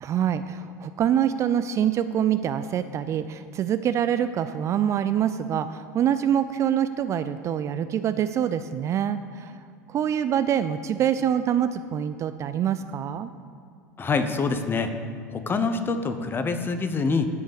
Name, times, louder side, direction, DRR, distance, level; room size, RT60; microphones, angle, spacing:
voice 1, 0.0-9.6 9.9-13.3, right 9 dB, 35° right, 12 dB, 0.4 m, -25 dB
voice 2, 14.0-14.9 15.3-17.3, left 4 dB, 25° left, 8 dB, 1.0 m, -25 dB
10.5 x 5.4 x 7.0 m, 2.4 s
figure-of-eight pair, 75°, 9 cm